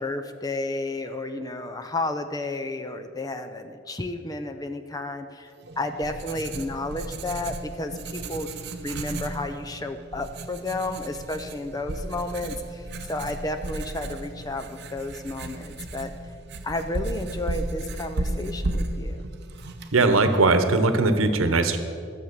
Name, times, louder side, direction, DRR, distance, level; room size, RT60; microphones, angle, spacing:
voice 1, 0.0-8.5 8.8-16.1 16.6-19.2, left 2 dB, 20° left, 7 dB, 0.5 m, -32 dB
Writing, 5.6-20.4, right 2 dB, 55° right, 0.8 m, -34 dB
voice 2, 19.9-21.8, right 3 dB, 85° right, 9 dB, 1.0 m, -20 dB
12.5 x 7.3 x 6.6 m, 2.4 s
head